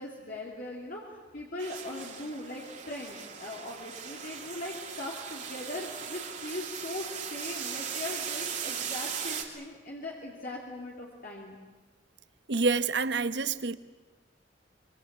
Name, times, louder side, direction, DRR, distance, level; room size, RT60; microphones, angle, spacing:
voice 1, 0.0-11.6, left 1 dB, 50° left, 2.9 m, -40 dB
sound 1, 1.6-9.4, right 7 dB, 40° right, 2.9 m, -38 dB
voice 2, 12.5-13.8, right 4 dB, 65° right, 1.0 m, -27 dB
25.0 x 23.5 x 8.2 m
head